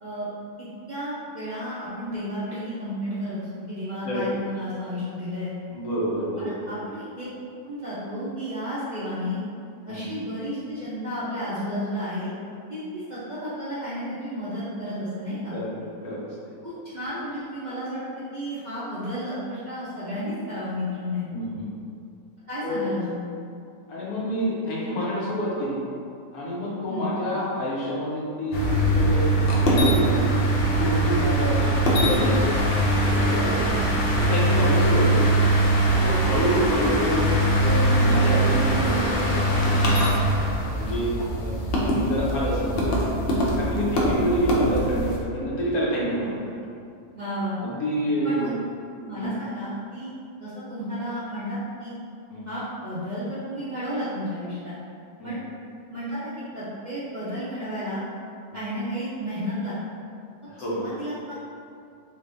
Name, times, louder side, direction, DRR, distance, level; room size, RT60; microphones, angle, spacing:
voice 1, 0.9-5.5 6.4-7.2 7.6-9.4 9.9-12.3 12.7-15.6 16.6-18.0 18.3-21.3 22.5-23.2 26.9-27.1 33.6-33.9 47.1-47.6 48.2-48.5 49.0-50.1 50.4-51.9 52.5-54.7 55.2-55.4 55.9-58.0 58.5-59.7 60.4-61.3, equal, 45° right, -12 dB, 0.6 m, -32 dB
voice 2, 5.7-6.7 9.9-10.1 15.5-15.7 16.0-16.2 16.4-16.5 21.3-21.7 22.6-22.8 23.9-25.8 26.3-28.7 28.9-29.3 29.6-30.5 30.8-33.6 34.2-35.3 36.0-37.3 37.6-39.7 40.7-41.1 41.4-41.5 41.9-42.9 43.5-46.5 47.6-48.6 49.2-49.3 52.3-52.5 55.2-55.3 60.5-60.8, equal, 75° left, -6 dB, 1.3 m, -28 dB
sound 1, 28.5-45.2, right 1 dB, 60° left, 0.6 m, -22 dB
3.8 x 3.2 x 2.6 m, 2.4 s
omnidirectional pair, 1.6 m